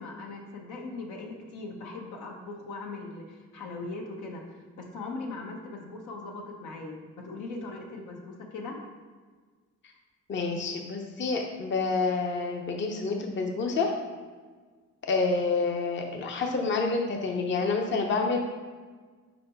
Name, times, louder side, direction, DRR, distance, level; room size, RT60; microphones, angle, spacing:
voice 1, 0.0-4.4 4.8-8.8, left 3 dB, 80° left, 0 dB, 1.1 m, -39 dB
voice 2, 10.3-14.0 15.0-18.4, left 4 dB, 40° left, 1 dB, 0.8 m, -28 dB
5.1 x 4.2 x 4.5 m, 1.5 s
cardioid pair, 90°, 30 cm